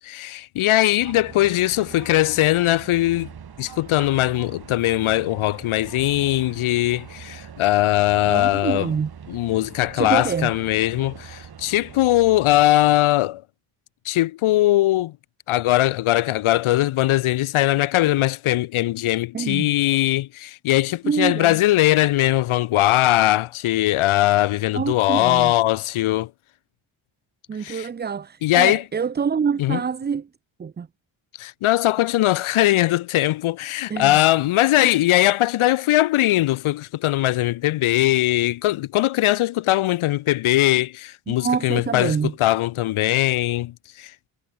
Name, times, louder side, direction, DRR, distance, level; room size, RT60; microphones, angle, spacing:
voice 1, 0.0-3.3 3.6-8.9 9.3-13.4 14.1-15.1 15.5-26.3 27.6-27.9 28.4-28.8 29.6-29.8 31.4-44.1, left 15 dB, 75° left, 0.6 m, -20 dB
sound 1, 1.0-12.7, right 7 dB, 50° right, 4.5 m, -42 dB
voice 2, 8.3-9.1 10.0-10.5 19.3-19.7 21.0-21.6 24.7-25.5 27.5-30.3 30.6-30.9 33.9-34.2 41.3-42.3, right 6 dB, 25° right, 0.4 m, -26 dB
wide cardioid pair, 165°, 49 cm